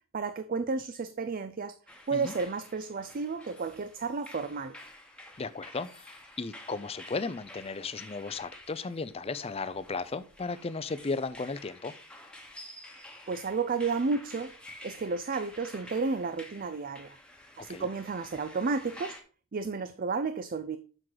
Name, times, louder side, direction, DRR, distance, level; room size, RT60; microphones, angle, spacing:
voice 1, 0.1-1.8 2.1-4.8 13.3-14.5 14.8-17.2 17.6-19.2 19.5-20.8, right 4 dB, 40° right, 0.4 m, -32 dB
sound 1, 1.9-19.2, left 1 dB, 5° left, 1.1 m, -50 dB
voice 2, 5.4-11.9 17.7-17.9, left 4 dB, 25° left, 0.5 m, -35 dB
7.5 x 6.3 x 3.9 m
head